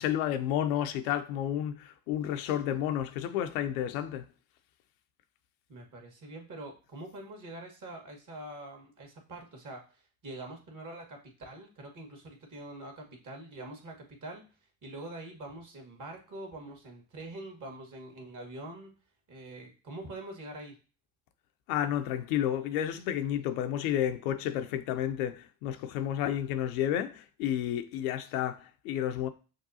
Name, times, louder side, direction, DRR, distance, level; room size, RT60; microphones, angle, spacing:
voice 1, 0.0-4.3 21.7-29.3, left 10 dB, 75° left, 0.6 m, -31 dB
voice 2, 5.7-14.5 14.8-18.9 19.3-20.8, right 1 dB, 45° right, 1.6 m, -44 dB
6.2 x 2.3 x 2.7 m
hypercardioid pair, 55°, 44 cm